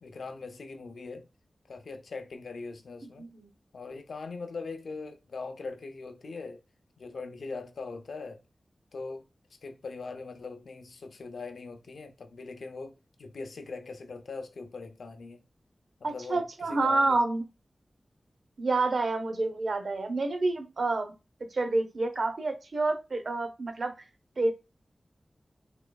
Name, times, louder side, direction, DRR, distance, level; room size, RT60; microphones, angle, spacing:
voice 1, 0.0-1.3 1.7-3.3 3.7-6.6 7.0-8.4 8.9-9.3 9.6-15.4 16.0-17.2, left 4 dB, 85° left, 0.5 m, -41 dB
voice 2, 3.2-3.5 16.0-17.4 18.6-21.1 21.5-23.9 24.4-24.5, right 3 dB, 70° right, 0.6 m, -28 dB
3.7 x 2.9 x 2.2 m
wide cardioid pair, 70°, 0 cm